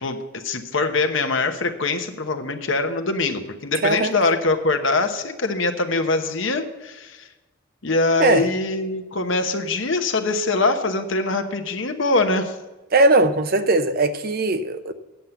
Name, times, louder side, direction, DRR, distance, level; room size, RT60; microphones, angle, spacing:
voice 1, 0.0-7.3 7.8-12.6, left 3 dB, 65° left, 1.0 m, -23 dB
voice 2, 12.9-14.9, right 2 dB, 45° right, 0.7 m, -19 dB
9.4 x 7.4 x 6.9 m
head